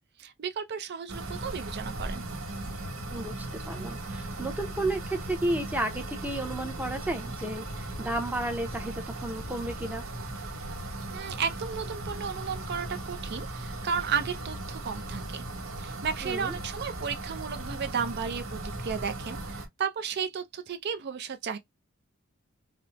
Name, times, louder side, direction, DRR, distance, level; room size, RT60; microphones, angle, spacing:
voice 1, 0.2-2.2 11.1-15.4 15.8-21.6, right 6 dB, 50° right, 0.4 m, -33 dB
sound 1, 1.1-19.7, right 2 dB, 70° right, 1.0 m, -37 dB
voice 2, 3.1-10.0 16.2-16.5, right 1 dB, 10° right, 0.6 m, -33 dB
4.1 x 2.1 x 2.8 m
head